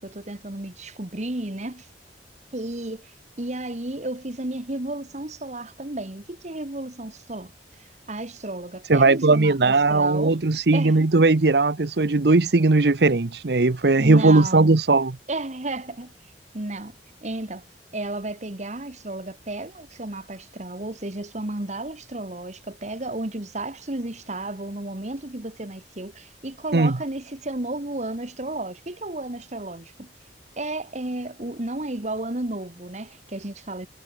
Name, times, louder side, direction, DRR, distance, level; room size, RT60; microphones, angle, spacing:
voice 1, 0.0-1.9 2.5-7.5 7.8-10.4 10.7-11.0 14.0-14.7 15.3-16.1 16.5-16.9 17.2-17.6 17.9-30.1 30.6-33.9, right 2 dB, 40° right, 1.7 m, -33 dB
voice 2, 8.9-15.2 26.7-27.0, right 3 dB, 65° right, 0.9 m, -18 dB
head